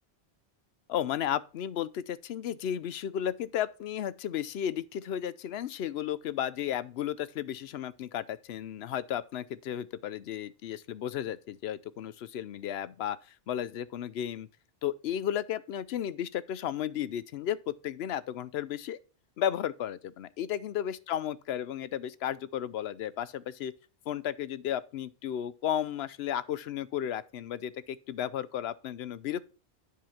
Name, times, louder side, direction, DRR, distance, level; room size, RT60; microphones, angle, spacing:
voice 1, 0.9-14.5 14.8-19.0 19.4-23.7 24.1-29.4, left 10 dB, 75° left, 0.8 m, -34 dB
10.5 x 4.0 x 5.7 m
omnidirectional pair, 1.1 m